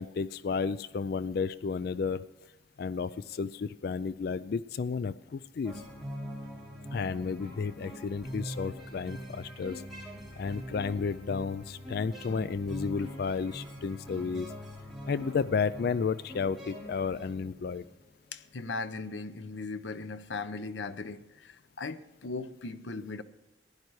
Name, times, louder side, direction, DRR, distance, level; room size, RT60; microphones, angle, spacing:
voice 1, 0.0-2.2 2.8-5.7 6.9-9.8 10.4-14.5 15.1-17.8, left 5 dB, 55° left, 16 dB, 0.3 m, -32 dB
sound 1, 5.6-17.9, equal, ahead, 3.1 m, -43 dB
voice 2, 18.3-23.2, left 3 dB, 85° left, 12 dB, 0.7 m, -38 dB
15.5 x 10.5 x 4.7 m, 1.0 s
head